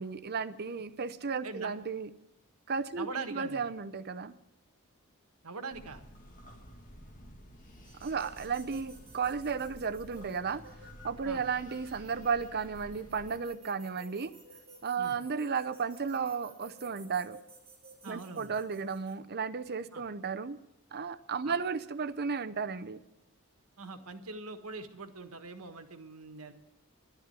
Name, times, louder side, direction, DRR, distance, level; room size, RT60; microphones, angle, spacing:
voice 1, 0.0-2.1 2.7-4.3 8.0-10.6 11.0-14.3 14.8-17.4 18.0-20.6 20.9-23.0, right 5 dB, 50° right, 11 dB, 0.7 m, -34 dB
voice 2, 3.0-3.6 5.4-6.0 11.2-11.4 15.0-15.2 18.0-18.5 19.9-20.0 21.4-21.6 23.8-26.5, right 4 dB, 85° right, 7 dB, 1.4 m, -42 dB
sound 1, 5.7-13.4, equal, 40° left, 2.0 m, -52 dB
sound 2, 7.8-19.1, right 2 dB, 30° right, 5.1 m, -55 dB
11.5 x 10.5 x 9.0 m, 0.87 s
head